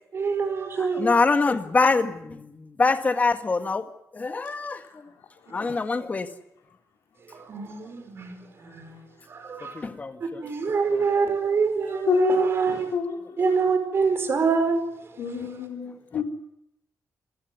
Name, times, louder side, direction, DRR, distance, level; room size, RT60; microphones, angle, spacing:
voice 1, 0.1-1.1 5.7-5.8 7.3-9.0 9.3-9.8 10.4-12.9 13.4-14.8, right 5 dB, 45° right, 4.9 m, -25 dB
voice 2, 0.8-3.9 4.1-5.1 5.5-6.3 9.6-10.4 10.9-11.3 16.1-16.2, left 3 dB, 25° left, 1.8 m, -25 dB
voice 3, 12.1-13.5 15.2-16.2, left 6 dB, 80° left, 4.5 m, -28 dB
27.0 x 15.5 x 9.7 m
wide cardioid pair, 150°, 6 cm